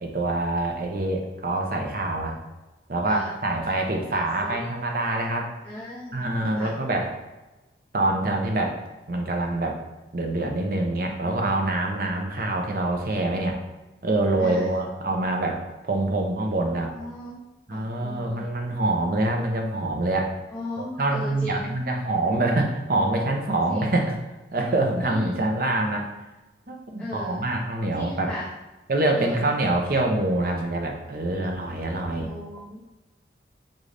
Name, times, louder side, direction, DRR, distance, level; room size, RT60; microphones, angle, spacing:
voice 1, 0.0-2.4 2.9-5.5 6.1-7.2 7.9-8.8 9.1-9.8 10.1-13.6 14.0-16.9 17.7-20.4 20.8-24.1 24.5-26.1 26.7-28.3 28.9-32.3, right 2 dB, 50° right, 2 dB, 0.7 m, -25 dB
voice 2, 4.1-4.7 5.6-6.3 6.6-6.7 11.2-11.4 14.4-14.8 16.8-17.4 17.7-18.4 20.5-21.8 23.7-23.9 25.0-25.4 27.0-27.4 27.9-28.5 29.1-29.4 32.2-32.8, left 1 dB, 5° left, -7 dB, 0.6 m, -36 dB
3.8 x 3.8 x 3.3 m, 1.1 s
head